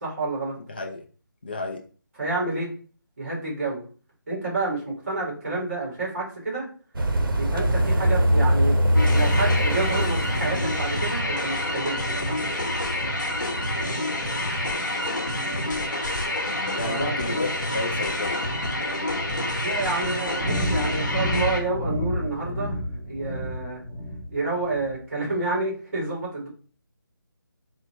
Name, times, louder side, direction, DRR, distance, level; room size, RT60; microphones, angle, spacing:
voice 1, 0.0-0.6 2.2-2.7 3.2-3.8 4.3-6.7 7.4-8.8 9.1-12.5 16.8-17.1 19.6-22.8 23.1-23.8 24.3-26.5, right 3 dB, 40° right, -4 dB, 2.0 m, -29 dB
voice 2, 0.7-1.0 1.4-1.8 14.3-14.7 16.7-18.5, left 3 dB, 25° left, 2 dB, 0.4 m, -32 dB
sound 1, 6.9-13.9, equal, 85° right, 0.7 m, -24 dB
sound 2, 8.9-21.6, left 1 dB, 60° left, 1.0 m, -28 dB
sound 3, 20.4-25.0, equal, 15° right, 1.2 m, -30 dB
3.9 x 2.1 x 4.3 m, 0.40 s
figure-of-eight pair, 175°, 11 cm